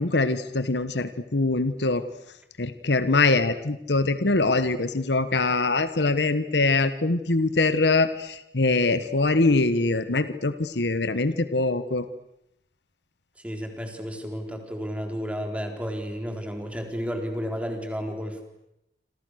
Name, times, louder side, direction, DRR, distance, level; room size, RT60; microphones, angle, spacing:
voice 1, 0.0-2.0 2.6-12.0, left 3 dB, 75° left, 12 dB, 1.4 m, -23 dB
voice 2, 13.4-18.4, equal, 10° right, 4 dB, 3.9 m, -32 dB
28.0 x 26.5 x 6.5 m, 0.83 s
head